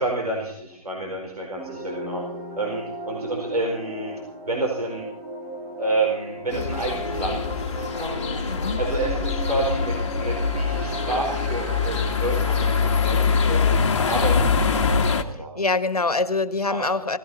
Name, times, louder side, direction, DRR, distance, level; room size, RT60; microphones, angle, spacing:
voice 1, 0.0-2.2 2.6-4.1 4.4-5.1 5.8-8.4 8.8-13.8 14.1-15.5 16.7-16.8, right 2 dB, 80° right, 0 dB, 4.6 m, -29 dB
sound 1, 1.6-13.0, right 2 dB, 15° right, 2.5 m, -35 dB
sound 2, 6.5-15.2, left 5 dB, 50° left, 1.9 m, -23 dB
voice 2, 8.5-8.8 15.5-17.2, left 3 dB, 80° left, 12 dB, 1.6 m, -24 dB
18.0 x 16.0 x 4.2 m, 0.70 s
figure-of-eight pair, 140°, 19 cm